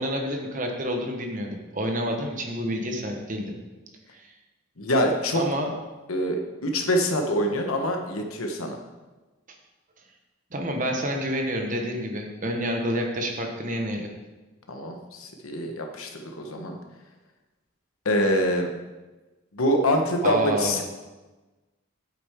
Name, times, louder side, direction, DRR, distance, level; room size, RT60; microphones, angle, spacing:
voice 1, 0.0-3.5 4.1-4.3 5.3-5.7 10.5-14.1 20.2-20.8, equal, 35° right, 2 dB, 1.1 m, -28 dB
voice 2, 4.8-5.4 6.1-8.8 14.7-16.8 18.0-18.7 19.5-20.8, equal, 85° left, 3 dB, 1.2 m, -25 dB
8.6 x 7.9 x 3.6 m, 1.2 s
head